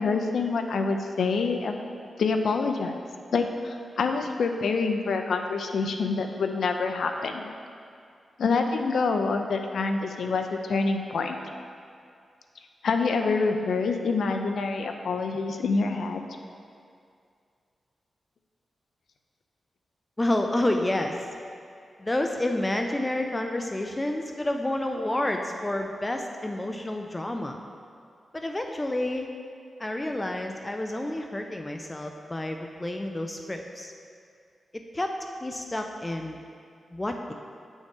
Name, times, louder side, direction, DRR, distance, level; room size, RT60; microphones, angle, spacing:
voice 1, 0.0-1.7 2.2-2.9 3.3-7.5 8.4-11.4 12.8-16.2, left 4 dB, 75° left, 5 dB, 0.5 m, -26 dB
voice 2, 20.2-21.3 22.0-27.6 28.3-29.3 29.8-33.9 34.7-35.1 35.4-36.4 36.9-37.3, left 1 dB, 15° left, 4 dB, 0.3 m, -29 dB
8.5 x 6.3 x 3.6 m, 2.3 s
wide cardioid pair, 150°, 0 cm